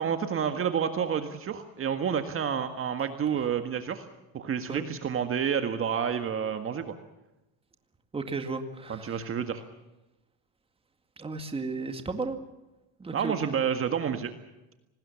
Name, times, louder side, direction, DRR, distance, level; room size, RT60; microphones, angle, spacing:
voice 1, 0.0-4.1 4.3-7.0 8.9-9.6 13.1-14.3, right 7 dB, 35° right, 7 dB, 1.8 m, -29 dB
voice 2, 8.1-9.3 11.2-12.4 13.0-13.5, right 3 dB, 15° right, 7 dB, 2.1 m, -34 dB
25.5 x 20.0 x 7.1 m, 0.99 s
cardioid pair, 130°, 37 cm